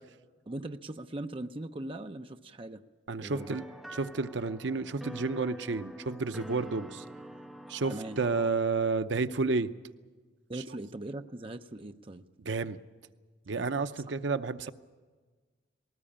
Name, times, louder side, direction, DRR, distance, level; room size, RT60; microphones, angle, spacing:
voice 1, 0.5-2.8 3.2-3.6 7.9-8.2 10.5-12.3, right 1 dB, 30° right, 7 dB, 0.7 m, -40 dB
voice 2, 3.1-3.6 3.9-7.0 7.7-9.7 10.5-10.6 12.4-12.8 13.5-14.7, right 4 dB, 70° right, 11 dB, 0.7 m, -31 dB
sound 1, 3.3-8.5, equal, ahead, 1.3 m, -46 dB
20.0 x 18.5 x 8.7 m, 1.4 s
head